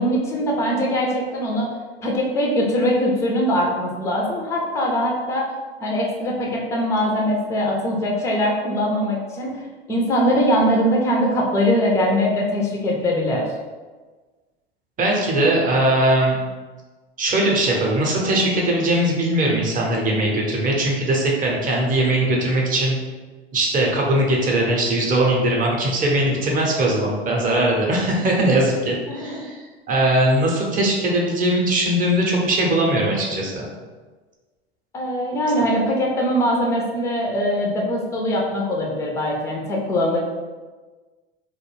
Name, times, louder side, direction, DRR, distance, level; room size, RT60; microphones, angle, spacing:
voice 1, 0.0-1.7 2.0-5.5 5.8-9.6 9.9-13.5 29.1-29.4 34.9-40.3, equal, 10° left, -1 dB, 0.4 m, -22 dB
voice 2, 15.0-16.4 17.2-23.0 23.5-29.6 29.9-33.7, right 1 dB, 25° right, -2 dB, 0.7 m, -20 dB
2.4 x 2.2 x 3.1 m, 1.3 s
hypercardioid pair, 100°, 32 cm